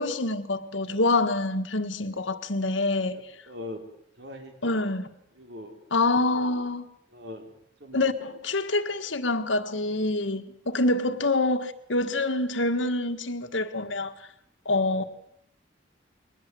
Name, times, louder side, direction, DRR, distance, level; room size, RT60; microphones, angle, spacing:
voice 1, 0.0-3.2 4.6-5.1 5.9-6.9 7.9-14.1 14.7-15.0, left 2 dB, 85° left, 1.7 m, -26 dB
voice 2, 3.5-3.8 4.2-4.5 5.3-5.7 7.1-7.5 7.8-8.0 11.1-11.2, left 2 dB, 60° right, 4.1 m, -41 dB
22.0 x 19.5 x 7.8 m
head